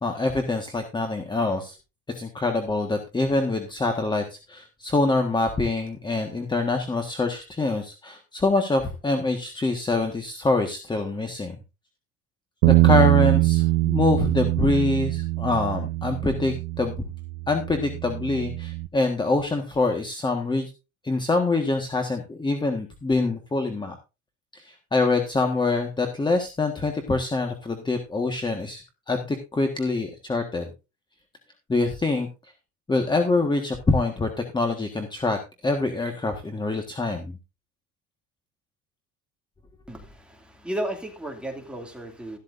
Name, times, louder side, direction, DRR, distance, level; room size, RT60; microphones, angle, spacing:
voice 1, 0.0-1.7 2.1-11.5 12.6-17.0 17.5-20.7 21.0-24.0 24.5-28.8 29.1-30.7 31.7-32.3 32.9-37.4, left 3 dB, 15° left, 1.5 m, -25 dB
Bass guitar, 12.6-18.9, right 19 dB, 80° right, 0.8 m, -23 dB
voice 2, 39.9-42.4, right 1 dB, 5° right, 2.4 m, -34 dB
13.5 x 12.0 x 2.6 m
cardioid pair, 140°, 33 cm